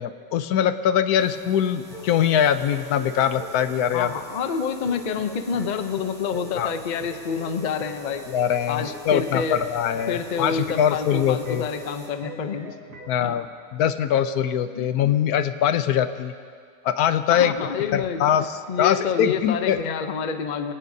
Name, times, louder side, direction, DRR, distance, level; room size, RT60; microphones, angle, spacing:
voice 1, 0.0-4.1 6.6-6.7 8.3-11.7 13.1-13.5 13.7-16.3 16.8-17.5 17.9-19.8, left 9 dB, 80° left, 11 dB, 1.1 m, -22 dB
sound 1, 1.2-12.1, equal, ahead, 2.6 m, -48 dB
sound 2, 1.5-13.2, right 1 dB, 75° right, 2.0 m, -42 dB
voice 2, 3.9-8.2 8.7-9.6 10.1-12.7 13.2-13.4 14.7-14.9 17.3-18.3 18.7-20.7, left 6 dB, 45° left, 8 dB, 0.6 m, -28 dB
23.5 x 17.0 x 2.7 m, 2.1 s
omnidirectional pair, 1.6 m